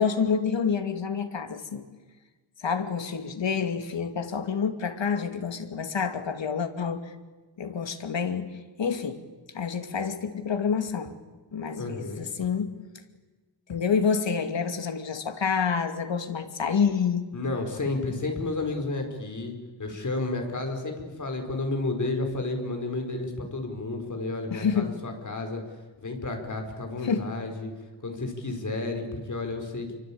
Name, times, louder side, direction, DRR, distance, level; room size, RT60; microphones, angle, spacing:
voice 1, 0.0-1.8 2.6-7.0 7.6-8.5 8.8-9.2 9.5-11.2 11.5-12.7 13.7-17.2 24.5-25.0 27.0-27.3, left 6 dB, 70° left, 7 dB, 2.6 m, -28 dB
voice 2, 11.8-12.2 17.3-25.6 26.0-27.7 28.0-30.0, left 2 dB, 40° left, 4 dB, 5.0 m, -31 dB
28.0 x 24.5 x 8.8 m, 1.3 s
wide cardioid pair, 160°, 46 cm